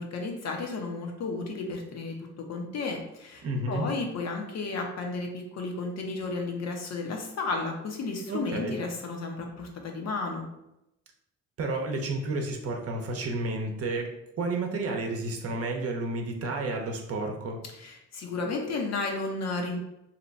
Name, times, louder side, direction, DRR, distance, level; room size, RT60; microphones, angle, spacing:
voice 1, 0.0-10.5 17.7-19.8, left 3 dB, 60° left, 2 dB, 0.8 m, -33 dB
voice 2, 3.4-3.9 8.3-8.7 11.6-17.6, right 2 dB, 50° right, 2 dB, 0.7 m, -31 dB
2.8 x 2.2 x 3.9 m, 0.85 s
cardioid pair, 90°, 30 cm